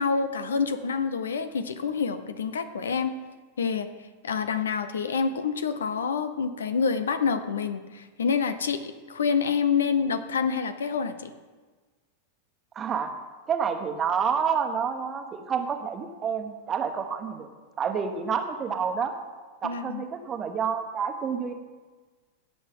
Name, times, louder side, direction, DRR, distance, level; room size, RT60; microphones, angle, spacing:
voice 1, 0.0-3.2 3.6-3.9 4.2-11.3 19.6-20.0, left 6 dB, 65° left, 11 dB, 0.8 m, -27 dB
voice 2, 12.7-13.1 13.5-17.5 17.8-19.1 19.6-21.5, right 6 dB, 25° right, 6 dB, 1.3 m, -28 dB
17.0 x 7.7 x 3.8 m, 1.4 s
figure-of-eight pair, 90°, 0 cm